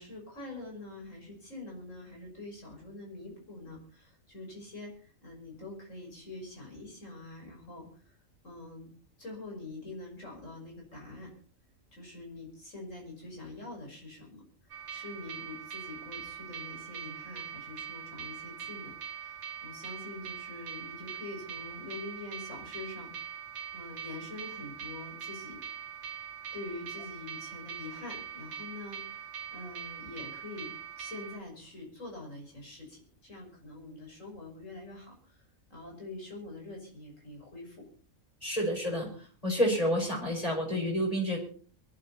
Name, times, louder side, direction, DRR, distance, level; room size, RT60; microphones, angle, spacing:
voice 1, 0.0-8.2 8.4-8.9 9.2-11.3 11.9-23.1 23.7-25.6 26.5-37.8, left 2 dB, 60° left, 0 dB, 6.4 m, -45 dB
sound 1, 14.7-31.4, right 8 dB, 80° right, 2.0 m, -42 dB
voice 2, 38.4-41.4, equal, 25° left, -1 dB, 5.6 m, -29 dB
23.0 x 12.0 x 4.3 m, 0.43 s
omnidirectional pair, 1.5 m